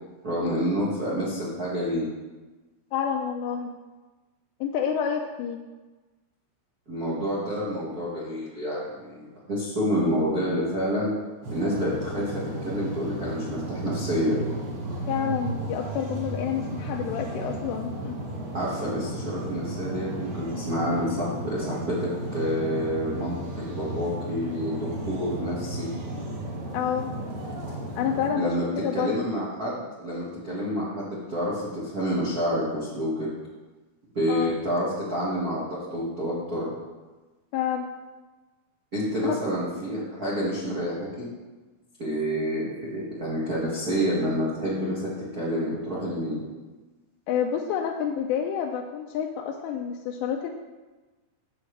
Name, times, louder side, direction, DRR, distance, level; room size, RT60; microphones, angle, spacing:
voice 1, 0.2-2.1 6.9-11.1 11.5-14.5 18.5-25.9 28.3-28.6 28.9-33.3 34.1-36.7 38.9-41.3 42.0-46.4, equal, 80° right, -8 dB, 0.8 m, -28 dB
voice 2, 2.9-3.8 4.6-5.6 15.1-18.2 26.7-27.1 28.0-29.2 34.3-34.5 37.5-37.9 39.2-39.4 47.3-50.5, left 8 dB, 85° left, 1 dB, 2.7 m, -28 dB
sound 1, 11.4-28.3, right 1 dB, 60° right, 3.1 m, -34 dB
13.5 x 7.3 x 3.3 m, 1.2 s
omnidirectional pair, 5.2 m